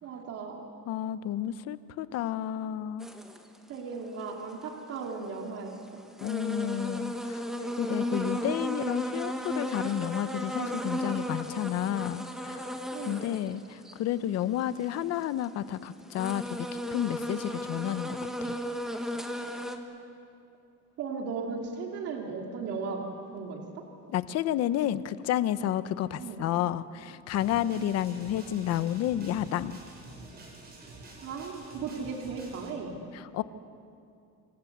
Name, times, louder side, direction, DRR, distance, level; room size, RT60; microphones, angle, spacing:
voice 1, 0.0-0.7 3.7-6.0 12.9-13.3 21.0-23.0 23.3-23.8 26.2-26.4 31.2-33.1, right 5 dB, 50° right, 1 dB, 3.2 m, -36 dB
voice 2, 0.9-3.1 6.2-7.4 7.8-12.7 13.1-18.6 24.1-29.8 33.1-33.4, left 11 dB, 55° left, 13 dB, 1.0 m, -31 dB
sound 1, 3.0-3.4 5.0-5.1 5.7-5.8 6.2-13.5 13.9-14.0 14.5-15.5 16.0-19.8, equal, ahead, 1.7 m, -34 dB
sound 2, 27.4-32.7, right 2 dB, 35° right, 6.4 m, -48 dB
27.0 x 24.0 x 8.2 m, 2.5 s
cardioid pair, 165°, 30 cm